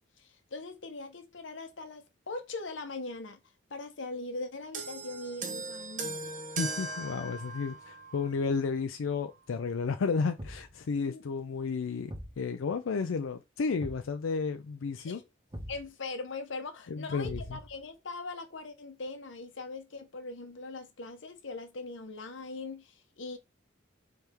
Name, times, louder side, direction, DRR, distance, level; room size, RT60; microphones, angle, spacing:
voice 1, 0.2-3.4 3.7-6.2 11.0-11.2 15.0-15.3 15.7-23.4, left 3 dB, 70° left, 1.0 m, -41 dB
sound 1, 4.7-8.3 9.2-9.4, right 3 dB, 40° right, 0.8 m, -39 dB
voice 2, 6.6-12.1 12.4-15.2 16.9-17.6, left 5 dB, 90° left, 0.4 m, -32 dB
Thump thud, 10.4-10.8 12.1-12.4 13.8-14.1 15.5-15.9 17.2-17.8, equal, 25° right, 1.2 m, -42 dB
4.5 x 3.4 x 3.4 m
head